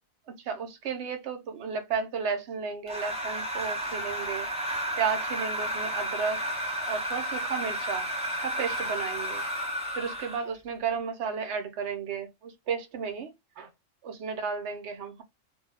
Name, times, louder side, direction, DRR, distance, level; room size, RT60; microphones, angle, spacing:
voice 1, 0.5-4.5 5.0-6.4 6.9-8.1 8.4-9.4 10.0-13.3 13.6-13.7 14.0-15.2, right 6 dB, 65° right, 0.9 m, -33 dB
sound 1, 2.9-10.5, equal, 10° right, 0.4 m, -32 dB
2.5 x 2.2 x 3.3 m
omnidirectional pair, 1.3 m